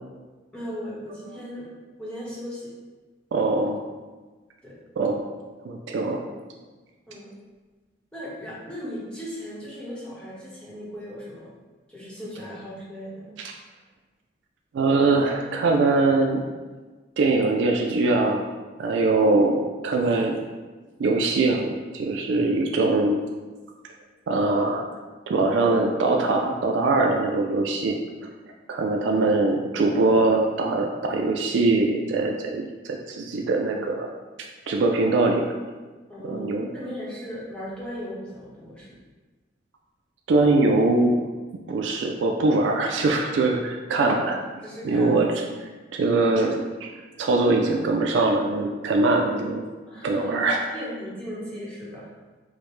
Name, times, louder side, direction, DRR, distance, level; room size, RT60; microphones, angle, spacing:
voice 1, 0.5-1.7 2.0-2.7 4.6-4.8 6.0-6.2 7.1-7.3 8.1-11.5 11.9-13.4 19.1-19.3 29.0-29.4 36.1-38.9 43.9-44.2 44.6-45.2 49.1-49.4 49.8-52.1, equal, 5° left, -8 dB, 0.9 m, -37 dB
voice 2, 3.3-3.8 5.0-5.2 5.6-6.2 14.7-16.4 17.2-18.5 18.8-20.4 21.0-23.2 24.3-24.9 25.3-28.0 28.7-34.1 34.7-35.4 36.2-36.7 40.3-41.3 41.7-44.4 44.8-45.3 45.9-46.6 46.8-46.9 47.2-49.6 50.0-50.6, right 3 dB, 75° right, 1 dB, 0.3 m, -22 dB
4.9 x 2.1 x 3.1 m, 1.3 s
head